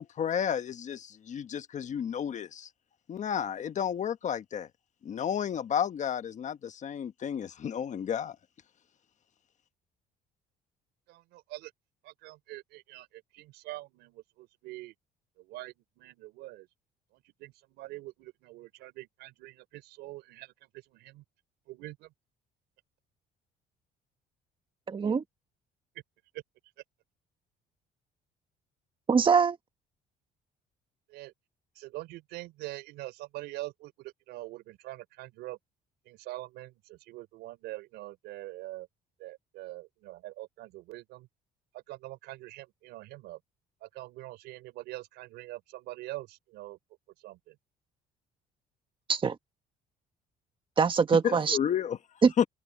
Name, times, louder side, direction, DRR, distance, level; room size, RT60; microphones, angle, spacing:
voice 1, 0.0-2.7 3.1-4.7 5.0-8.4 51.2-52.0 52.4-52.5, left 8 dB, 45° left, 1.3 m, -31 dB
voice 2, 11.1-11.7 12.0-14.9 15.4-16.7 17.1-20.5 20.9-21.2 21.7-22.1 26.3-26.4 31.1-31.3 31.7-35.6 36.1-38.9 39.2-41.3 41.7-43.4 43.8-46.8 47.2-47.5, right 18 dB, 90° right, 4.4 m, -44 dB
voice 3, 24.9-25.2 29.1-29.6 49.1-49.3 50.8-51.6 52.2-52.3, right 5 dB, 30° right, 1.4 m, -23 dB
cardioid pair, 110°, 17 cm